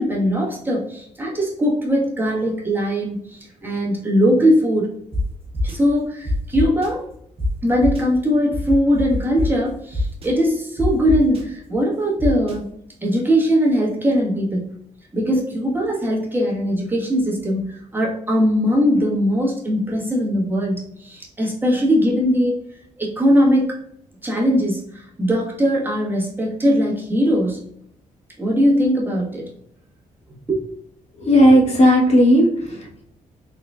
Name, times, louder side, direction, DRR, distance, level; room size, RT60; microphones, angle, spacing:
voice 1, 0.0-4.9 5.6-7.0 7.6-12.7 13.0-14.7 15.1-22.6 23.0-23.8 24.2-27.6 28.4-29.5 30.5-30.6, equal, 15° right, -3 dB, 1.3 m, -20 dB
sound 1, 5.1-5.2 5.5-5.8 6.3-6.9 7.4-7.5 7.8-8.0 8.5-9.5 9.9-10.3 10.8-11.4 12.2-12.5, left 2 dB, 40° right, 1.0 m, -23 dB
voice 2, 31.1-33.0, equal, 50° left, -1 dB, 1.2 m, -15 dB
4.0 x 3.7 x 2.3 m, 0.71 s
cardioid pair, 100°, 14 cm